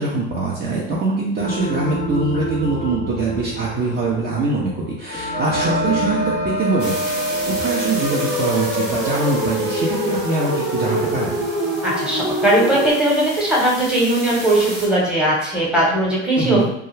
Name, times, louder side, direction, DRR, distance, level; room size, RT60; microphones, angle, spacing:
voice 1, 0.0-11.5 16.4-16.7, right 3 dB, 30° right, -6 dB, 0.6 m, -23 dB
sound 1, 1.4-11.8, right 1 dB, 15° left, 0.5 m, -31 dB
sound 2, 5.3-12.9, equal, 50° right, 1.0 m, -24 dB
sound 3, 6.8-14.9, right 1 dB, 90° right, 1.2 m, -34 dB
voice 2, 11.8-16.7, right 1 dB, 5° right, -5 dB, 1.0 m, -18 dB
2.3 x 2.3 x 3.1 m, 0.78 s
hypercardioid pair, 80°, 34 cm